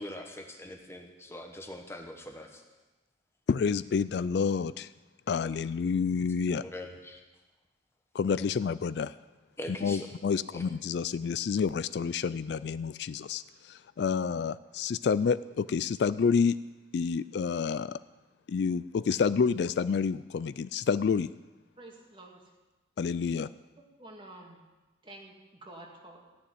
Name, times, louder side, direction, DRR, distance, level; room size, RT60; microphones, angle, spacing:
voice 1, 0.0-2.6 6.6-7.2 9.6-10.2 10.5-10.6, left 1 dB, 15° left, 3 dB, 1.2 m, -42 dB
voice 2, 3.5-4.9 5.3-6.6 8.1-9.1 9.8-16.6 16.9-18.0 18.5-21.3 23.0-23.5, left 5 dB, 60° left, 15 dB, 0.3 m, -29 dB
voice 3, 21.8-22.4 24.0-24.6 25.0-26.3, right 2 dB, 25° right, 0 dB, 2.0 m, -49 dB
14.5 x 6.9 x 9.4 m, 1.2 s
head